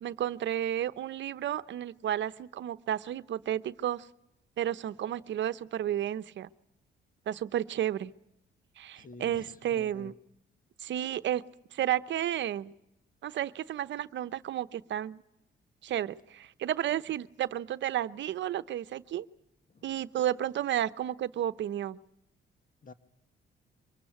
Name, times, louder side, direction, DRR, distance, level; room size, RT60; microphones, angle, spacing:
voice 1, 0.0-4.0 4.6-6.5 7.3-8.1 8.8-10.1 10.8-11.4 11.7-12.7 13.2-15.2 15.8-19.3 19.8-22.0, right 11 dB, 65° right, 13 dB, 0.9 m, -32 dB
voice 2, 9.0-10.1 19.7-19.8 22.8-22.9, left 3 dB, 45° left, 11 dB, 1.6 m, -49 dB
24.0 x 20.0 x 9.4 m, 0.84 s
cardioid pair, 90°, 20 cm